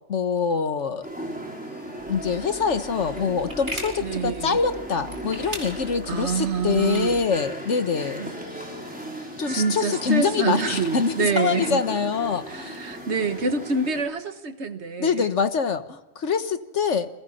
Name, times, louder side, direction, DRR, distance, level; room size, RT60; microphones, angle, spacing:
voice 1, 0.1-1.1 2.1-8.3 9.4-12.9 15.0-17.1, left 5 dB, 80° left, 10 dB, 1.6 m, -25 dB
sound 1, 1.0-14.0, right 1 dB, 5° right, 5.3 m, -36 dB
sound 2, 2.0-7.2, right 1 dB, 45° right, 5.5 m, -40 dB
voice 2, 4.0-4.6 6.1-7.2 8.2-8.3 9.1-11.8 12.5-15.3, right 5 dB, 70° right, 9 dB, 1.7 m, -27 dB
29.0 x 22.5 x 4.3 m, 1.1 s
omnidirectional pair, 1.2 m